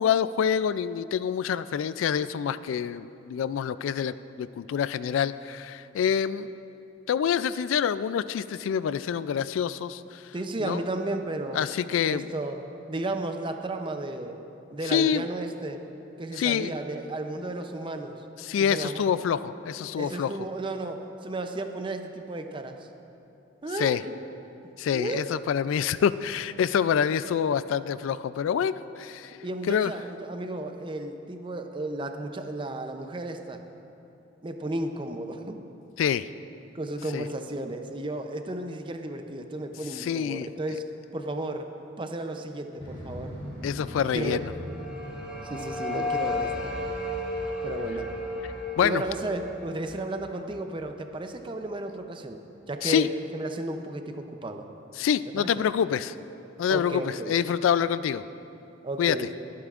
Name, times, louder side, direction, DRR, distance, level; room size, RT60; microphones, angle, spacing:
voice 1, 0.0-6.5 7.1-10.3 10.6-10.8 11.5-12.3 14.8-15.3 16.3-16.7 18.4-20.3 23.8-24.0 24.8-29.4 29.7-29.9 36.0-36.3 37.1-37.3 39.9-40.5 43.6-44.5 48.8-49.0 52.8-53.1 55.0-56.1 56.6-58.2 59.0-59.3, left 8 dB, 80° left, 15 dB, 0.3 m, -26 dB
voice 2, 10.3-11.7 12.1-14.4 14.7-15.8 16.2-18.2 18.6-19.0 20.0-22.9 23.6-24.1 24.9-25.3 29.4-33.6 34.4-35.6 36.7-41.7 42.0-43.4 44.1-44.4 45.4-46.7 47.6-48.1 48.8-52.4 52.7-54.7 55.4-55.5 56.7-57.3 58.8-59.3, right 2 dB, 25° right, 6 dB, 0.5 m, -33 dB
Motorcycle, 42.8-48.0, equal, 30° left, 2.8 m, -42 dB
sound 1, 44.2-51.0, left 2 dB, 5° right, 1.8 m, -34 dB
22.5 x 8.6 x 2.5 m, 2.9 s
head